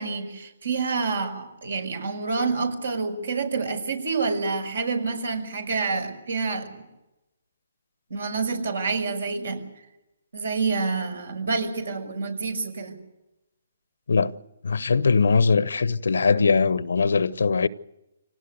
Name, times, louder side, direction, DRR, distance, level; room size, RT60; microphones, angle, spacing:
voice 1, 0.0-6.8 8.1-9.7 10.3-13.0, right 4 dB, 75° right, 5.8 m, -28 dB
voice 2, 14.6-17.7, left 4 dB, 80° left, 0.9 m, -21 dB
25.5 x 18.5 x 8.0 m
hypercardioid pair, 145°, 0 cm